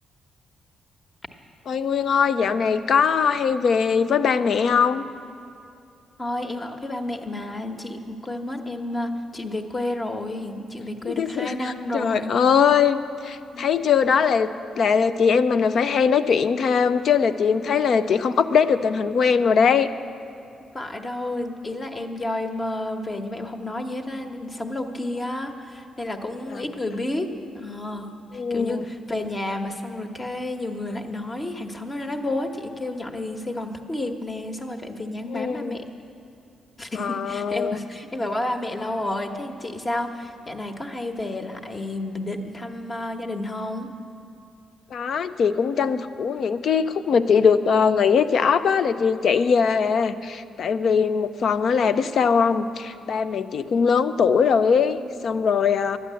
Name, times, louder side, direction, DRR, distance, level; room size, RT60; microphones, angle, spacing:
voice 1, 1.7-5.1 11.0-11.6 11.9-14.5 14.7-19.9 26.5-26.6 28.3-28.8 35.3-35.7 37.0-37.8 44.9-55.0 55.2-56.0, left 6 dB, 65° left, 12 dB, 0.5 m, -21 dB
voice 2, 6.2-12.3 13.5-13.7 20.7-27.3 27.5-35.8 36.8-43.9 55.0-55.2, left 1 dB, 30° left, 4 dB, 1.2 m, -31 dB
11.5 x 9.2 x 7.6 m, 2.6 s
supercardioid pair, 60°, 0 cm